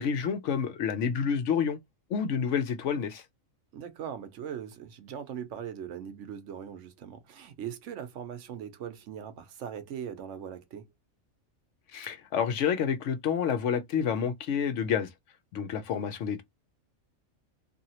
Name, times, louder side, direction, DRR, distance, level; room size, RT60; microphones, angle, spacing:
voice 1, 0.0-1.8 2.1-3.2 11.9-15.1 15.5-16.4, left 7 dB, 70° left, 0.9 m, -29 dB
voice 2, 3.7-10.9, right 8 dB, 70° right, 0.9 m, -40 dB
2.8 x 2.6 x 2.8 m
omnidirectional pair, 1.4 m